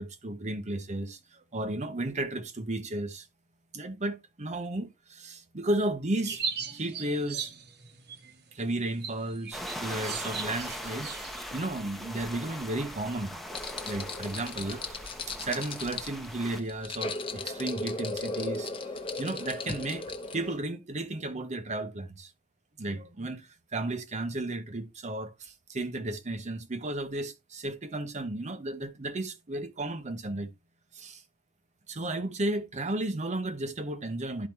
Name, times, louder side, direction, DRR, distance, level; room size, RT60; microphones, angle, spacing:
voice 1, 0.0-3.3 3.7-7.5 8.5-13.5 13.8-18.7 19.2-20.1 20.3-22.3 22.8-30.5 30.9-31.2 31.9-34.5, right 2 dB, 35° right, 0.8 m, -34 dB
sound 1, 6.1-11.5, right 6 dB, 50° right, 1.2 m, -38 dB
sound 2, 9.5-16.6, equal, ahead, 0.9 m, -40 dB
sound 3, 13.5-20.6, left 3 dB, 25° left, 1.0 m, -36 dB
12.0 x 4.9 x 2.8 m
head